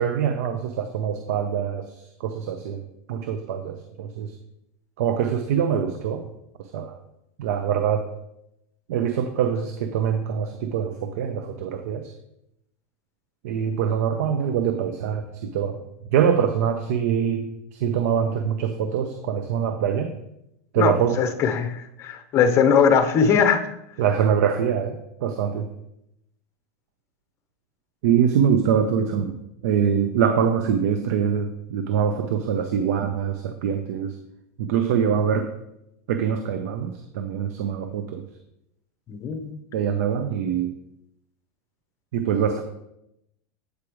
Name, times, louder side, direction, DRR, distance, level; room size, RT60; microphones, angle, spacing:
voice 1, 0.0-1.9 2.2-2.8 3.1-4.3 5.0-6.2 6.6-7.0 7.4-8.1 8.9-12.1 13.4-15.8 16.1-20.1 20.7-21.2 24.0-25.7 28.0-29.4 29.6-34.1 34.6-35.5 36.1-38.2 39.7-40.7 42.1-42.6, right 8 dB, 70° right, 8 dB, 0.6 m, -24 dB
voice 2, 20.8-23.7 39.1-39.6, left 6 dB, 30° left, 8 dB, 0.7 m, -20 dB
8.2 x 4.9 x 3.1 m, 0.83 s
supercardioid pair, 145°, 9 cm